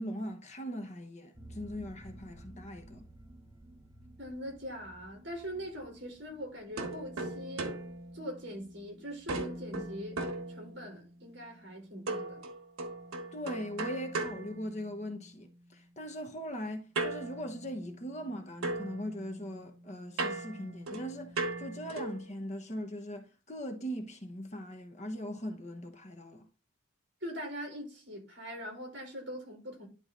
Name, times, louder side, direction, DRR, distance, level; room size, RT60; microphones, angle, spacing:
voice 1, 0.0-3.1 13.3-26.5, equal, 35° left, 1.1 m, -40 dB
sound 1, 1.3-11.0 11.2-11.3 11.6-11.7, right 1 dB, 15° right, 1.0 m, -55 dB
voice 2, 4.2-7.8 8.1-10.2 10.5-12.4 27.2-29.9, equal, 55° right, 4.7 m, -42 dB
sound 2, 6.8-8.9 9.3-11.1 12.1-15.3 16.9-18.3 18.6-22.3, right 2 dB, 85° right, 1.4 m, -38 dB
11.0 x 3.9 x 3.9 m
head